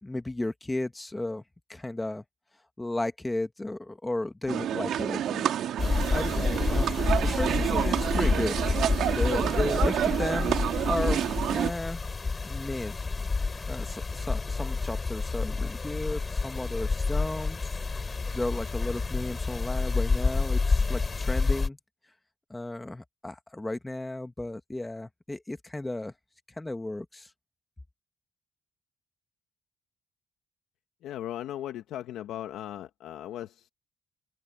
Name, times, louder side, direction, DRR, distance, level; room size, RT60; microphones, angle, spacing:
voice 1, 0.0-1.4 1.7-2.2 2.8-5.5 5.9-8.6 9.1-10.5 10.8-11.2 11.5-12.0 12.4-13.1 13.7-17.6 18.3-21.8 22.5-26.1 26.6-27.3, left 2 dB, 15° left, 1.8 m, -34 dB
sound 1, 4.5-11.7, right 10 dB, 75° right, 2.6 m, -28 dB
sound 2, 5.8-21.7, left 4 dB, 30° left, 5.1 m, -29 dB
voice 2, 31.0-33.7, left 12 dB, 85° left, 1.1 m, -37 dB
open air
cardioid pair, 90°, 0 cm